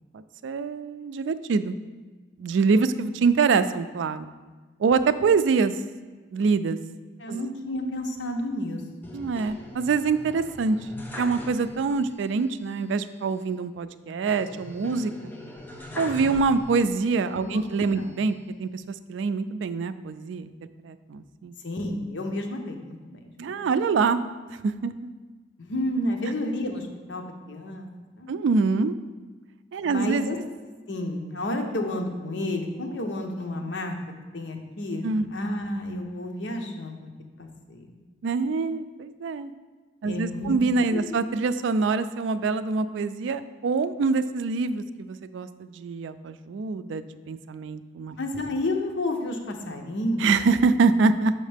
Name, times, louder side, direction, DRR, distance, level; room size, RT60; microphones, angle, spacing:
voice 1, 0.1-1.8 2.4-4.3 4.8-5.7 6.3-6.8 7.3-7.5 9.1-10.8 11.2-15.3 16.0-18.3 18.6-20.5 20.8-21.5 23.4-24.2 24.6-24.9 28.3-29.0 29.7-30.3 35.0-35.3 38.2-39.5 40.0-48.2 50.2-51.3, right 4 dB, 90° right, 12 dB, 0.3 m, -25 dB
voice 2, 7.2-9.2 17.4-18.2 21.6-23.7 25.6-27.9 28.2-28.4 29.8-30.4 30.9-33.9 34.3-37.1 37.4-37.9 40.0-40.5 40.9-41.2 48.2-50.2, left 1 dB, 80° left, 4 dB, 0.8 m, -31 dB
sound 1, 9.0-12.1 12.4-12.5 14.3-17.0 17.5-18.4, left 1 dB, 10° left, 0.6 m, -41 dB
6.3 x 5.7 x 3.4 m, 1.3 s
head